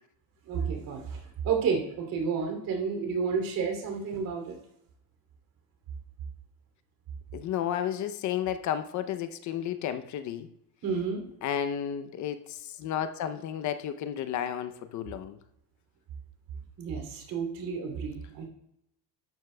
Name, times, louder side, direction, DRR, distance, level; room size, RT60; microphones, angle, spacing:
voice 1, 0.5-4.5 10.8-11.2 16.8-18.5, right 6 dB, 55° right, 3 dB, 2.8 m, -31 dB
voice 2, 7.3-10.5 11.4-15.4, left 9 dB, 45° left, 10 dB, 0.6 m, -32 dB
12.0 x 9.3 x 2.2 m, 0.79 s
cardioid pair, 135°, 40 cm